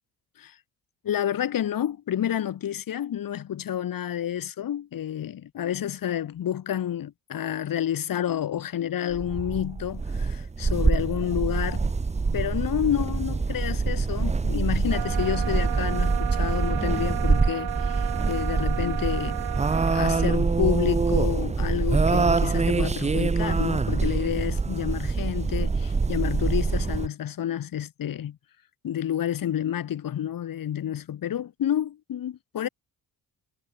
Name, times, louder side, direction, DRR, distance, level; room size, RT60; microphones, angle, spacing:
voice 1, 1.0-11.9 12.3-19.4 19.8-28.4 28.8-32.7, left 10 dB, 60° left, 5.9 m, -29 dB
sound 1, 9.1-27.1, right 4 dB, 15° right, 1.1 m, -25 dB
sound 2, 11.2-17.5, equal, ahead, 3.9 m, -45 dB
sound 3, 14.9-20.4, right 14 dB, 80° right, 3.2 m, -34 dB
cardioid pair, 130°, 38 cm